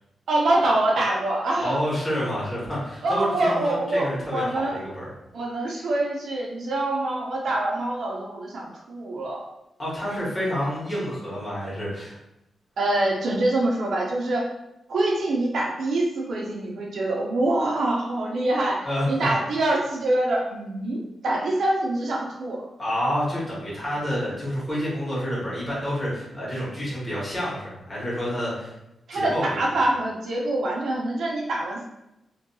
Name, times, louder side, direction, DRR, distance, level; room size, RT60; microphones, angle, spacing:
voice 1, 0.3-1.8 3.0-4.8 5.3-9.5 12.8-14.5 14.9-22.7 29.1-31.8, right 2 dB, 70° right, -2 dB, 0.5 m, -25 dB
voice 2, 1.6-5.0 9.8-12.2 18.8-19.1 22.8-28.7 29.1-29.4, equal, 20° left, -7 dB, 1.3 m, -28 dB
2.6 x 2.3 x 2.6 m, 0.89 s
wide cardioid pair, 140°, 0 cm